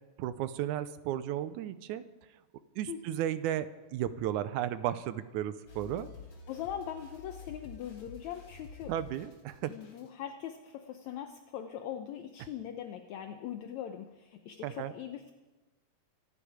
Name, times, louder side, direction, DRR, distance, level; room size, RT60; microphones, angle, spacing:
voice 1, 0.2-2.0 2.8-6.1 8.9-9.7 14.6-14.9, right 11 dB, 80° right, 13 dB, 2.1 m, -34 dB
voice 2, 2.9-3.2 6.5-8.9 9.7-15.3, left 9 dB, 75° left, 6 dB, 1.9 m, -41 dB
sound 1, 5.7-10.1, left 5 dB, 45° left, 4.0 m, -50 dB
25.0 x 10.0 x 4.9 m, 1.2 s
omnidirectional pair, 3.6 m